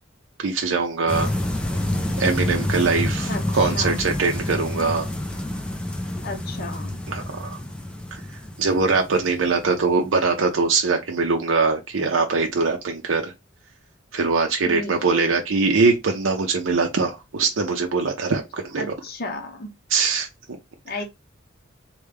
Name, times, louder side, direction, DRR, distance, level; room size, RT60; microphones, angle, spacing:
voice 1, 0.4-1.3 2.2-5.1 7.1-7.6 8.1-8.2 8.6-13.3 14.1-18.8 19.9-20.3, right 4 dB, 80° right, 0.6 m, -22 dB
sound 1, 1.1-10.1, left 1 dB, 5° left, 0.5 m, -28 dB
voice 2, 3.3-4.0 6.2-6.9 14.6-15.4 18.8-19.7 20.8-21.0, left 2 dB, 50° left, 0.8 m, -33 dB
3.3 x 2.2 x 3.3 m
head